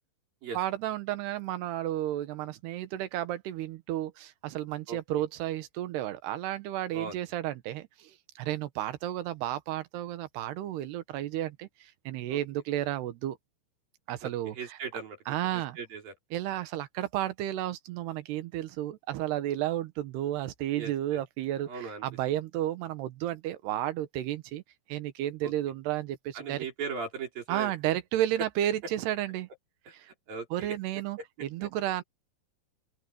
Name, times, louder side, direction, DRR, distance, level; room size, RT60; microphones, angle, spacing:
voice 1, 0.5-13.4 14.1-14.8 15.3-15.8 16.3-24.6 24.9-26.7 27.5-29.5 29.9-30.1 30.5-32.0, right 13 dB, 85° right, 3.3 m, -32 dB
voice 2, 14.6-15.2 15.5-16.1 20.7-21.2 21.7-22.0 25.4-25.5 26.3-27.7 29.9-30.0 30.3-30.7 31.6-31.7, right 5 dB, 60° right, 6.5 m, -38 dB
open air
omnidirectional pair, 4.6 m